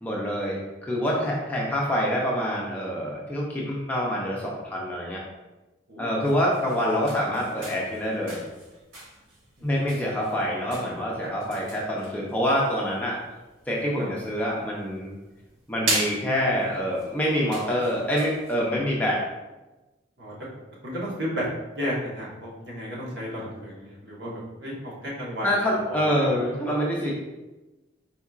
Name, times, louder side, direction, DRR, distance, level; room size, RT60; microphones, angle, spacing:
voice 1, 0.0-5.2 6.0-8.4 9.6-13.2 13.7-15.1 15.7-19.2 25.4-27.1, equal, 10° left, -4 dB, 0.6 m, -26 dB
sound 1, 6.1-18.7, right 2 dB, 90° right, 1.4 m, -38 dB
voice 2, 9.6-10.0 14.0-14.1 20.2-20.4 20.8-21.4 21.7-25.5 25.9-26.1, equal, 60° right, -5 dB, 1.3 m, -33 dB
4.5 x 4.1 x 2.4 m, 1.1 s
head